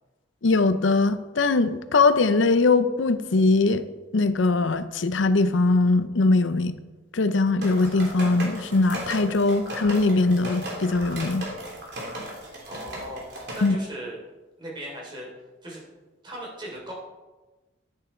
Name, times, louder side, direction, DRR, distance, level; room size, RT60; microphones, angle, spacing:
voice 1, 0.4-3.8 4.1-6.8 7.1-11.5 13.6-13.8, left 3 dB, 80° left, 0.6 m, -21 dB
sound 1, 7.6-13.7, right 1 dB, 60° right, 3.2 m, -36 dB
voice 2, 12.6-14.2 14.6-15.3 15.6-15.8 16.2-16.9, equal, 25° right, 3.3 m, -38 dB
11.0 x 9.9 x 4.4 m
head